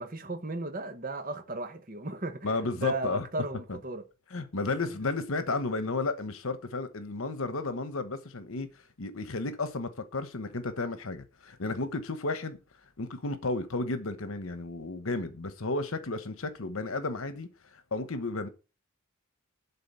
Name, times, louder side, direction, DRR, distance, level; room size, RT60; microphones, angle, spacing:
voice 1, 0.0-2.5 2.7-4.0, right 2 dB, 40° right, 1.1 m, -35 dB
voice 2, 2.4-3.2 4.3-8.7 9.0-12.6 13.0-18.5, left 3 dB, 75° left, 1.1 m, -33 dB
11.5 x 4.1 x 6.9 m
head